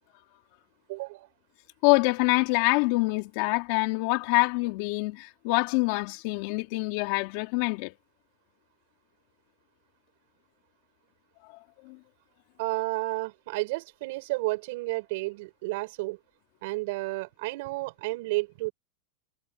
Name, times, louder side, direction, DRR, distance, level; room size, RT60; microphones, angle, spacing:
voice 1, 0.9-1.3 12.6-16.2 16.6-18.7, right 23 dB, 60° right, 6.4 m, -31 dB
voice 2, 1.8-7.9 11.5-11.6 11.8-12.0, left 25 dB, 50° left, 3.3 m, -25 dB
supercardioid pair, 160°, 0 cm